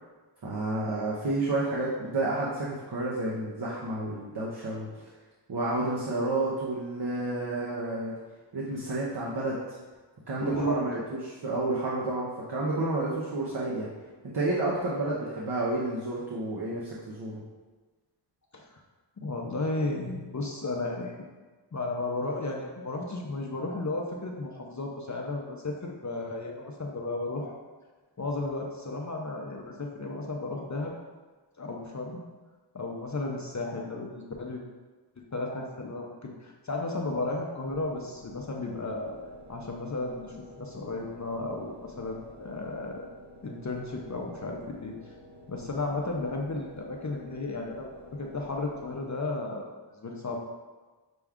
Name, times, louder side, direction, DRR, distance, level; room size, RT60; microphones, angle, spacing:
voice 1, 0.4-4.9 5.5-8.1 8.5-9.8 10.3-13.9 14.3-17.4, right 2 dB, 60° right, -5 dB, 0.7 m, -30 dB
voice 2, 10.4-10.8 18.5-18.7 19.2-21.2 21.7-27.6 28.2-31.0 31.6-32.2 32.7-34.6 35.3-39.2 39.5-43.0 43.4-44.9 45.5-49.7 50.0-50.4, left 2 dB, 40° left, 0 dB, 0.5 m, -34 dB
sound 1, 37.7-49.4, left 1 dB, 25° right, 0.6 m, -50 dB
6.0 x 2.3 x 3.5 m, 1.3 s
wide cardioid pair, 50°, 45 cm